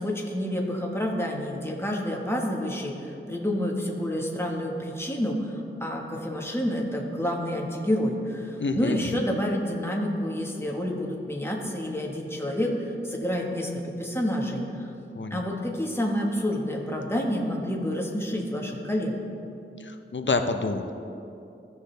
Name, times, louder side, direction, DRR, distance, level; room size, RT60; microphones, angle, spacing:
voice 1, 0.0-14.9 15.3-19.2, equal, 10° left, -1 dB, 1.3 m, -29 dB
voice 2, 8.6-9.2 15.2-15.4 19.8-20.9, left 3 dB, 70° left, 7 dB, 0.7 m, -28 dB
15.0 x 5.9 x 3.3 m, 2.7 s
wide cardioid pair, 50°, 20 cm